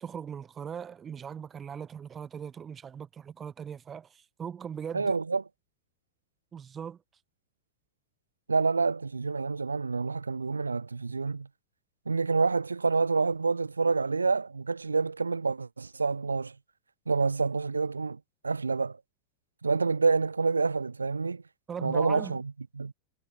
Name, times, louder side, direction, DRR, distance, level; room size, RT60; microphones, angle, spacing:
voice 1, 0.0-5.1 6.5-7.0 21.7-22.4, right 7 dB, 20° right, 0.6 m, -39 dB
voice 2, 4.9-5.5 8.5-11.5 12.1-16.6 17.1-19.0 19.6-21.4 21.8-22.9, right 4 dB, 80° right, 0.4 m, -28 dB
figure-of-eight pair, 90°, 0 cm